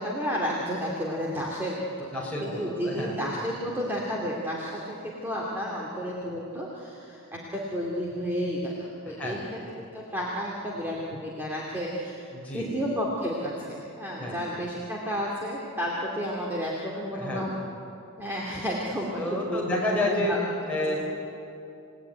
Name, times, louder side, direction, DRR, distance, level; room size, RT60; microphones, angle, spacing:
voice 1, 0.0-2.1 2.4-12.2 12.5-17.5 18.2-20.4 20.9-21.0, equal, 10° right, -4 dB, 2.5 m, -32 dB
voice 2, 2.1-3.5 9.1-9.4 12.3-12.7 14.2-14.4 17.1-17.5 19.2-20.3 20.6-20.9, left 1 dB, 5° left, -4 dB, 5.3 m, -30 dB
28.5 x 18.0 x 9.5 m, 2.8 s
head